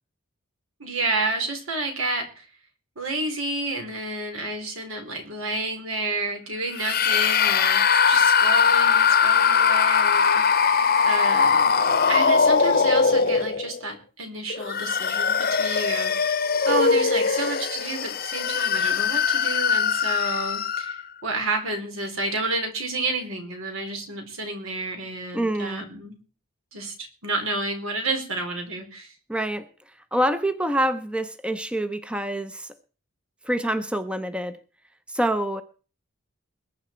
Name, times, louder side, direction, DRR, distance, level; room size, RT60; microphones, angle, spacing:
voice 1, 0.8-2.5 3.0-10.7 11.0-11.8 12.1-26.2 26.7-29.1, right 2 dB, 80° right, 5 dB, 4.0 m, -30 dB
sound 1, 6.7-13.8 14.5-21.0, left 6 dB, 45° left, 0.9 m, -21 dB
voice 2, 25.3-25.8 29.3-29.7 30.1-32.7 33.4-34.6 35.1-35.6, right 1 dB, 5° right, 10 dB, 0.7 m, -26 dB
21.0 x 9.1 x 4.5 m, 0.39 s
head